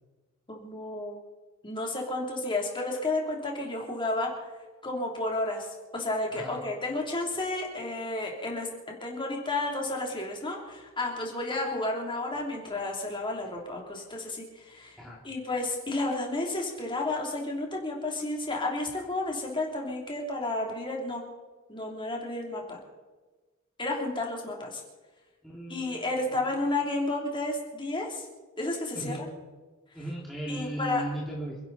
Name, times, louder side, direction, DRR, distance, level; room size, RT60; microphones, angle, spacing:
voice 1, 0.5-1.2 1.6-4.3 4.8-5.7 5.9-21.2 21.7-22.8 23.8-24.8 25.7-28.3 28.6-29.3 30.5-31.0, left 2 dB, 25° left, 0 dB, 3.1 m, -32 dB
voice 2, 25.4-26.1 28.9-29.2 29.9-31.6, right 1 dB, ahead, -5 dB, 2.4 m, -36 dB
27.5 x 11.5 x 4.1 m, 1.3 s
head